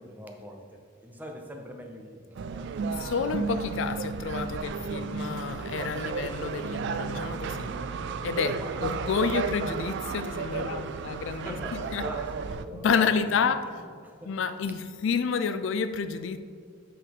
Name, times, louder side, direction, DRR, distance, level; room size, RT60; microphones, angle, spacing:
voice 1, 0.0-3.1 7.6-8.0 8.6-8.8 10.5-11.0 11.3-13.4 13.7-14.5, equal, 10° right, 0.7 m, -43 dB
sound 1, 2.4-12.6, right 5 dB, 55° right, 0.3 m, -33 dB
voice 2, 3.0-7.7 8.2-12.0 12.7-13.7 14.3-16.4, left 6 dB, 60° left, 0.4 m, -29 dB
8.5 x 4.0 x 5.4 m
head